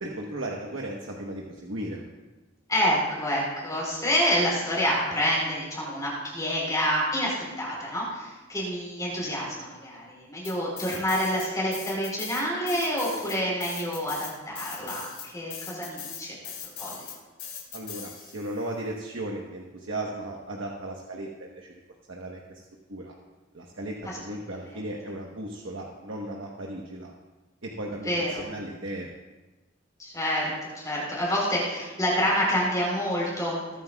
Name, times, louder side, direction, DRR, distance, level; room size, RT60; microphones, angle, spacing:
voice 1, 0.0-2.0 17.7-21.7 22.1-22.6 22.9-23.2 23.5-27.1 27.6-29.1, right 1 dB, 85° right, -1 dB, 1.1 m, -36 dB
voice 2, 2.7-16.4 16.8-17.0 28.1-28.5 30.0-33.6, equal, 20° left, -4 dB, 3.8 m, -28 dB
sound 1, 10.4-11.5 11.7-18.5, left 8 dB, 60° left, 3.5 m, -39 dB
21.0 x 9.5 x 2.4 m, 1.1 s
head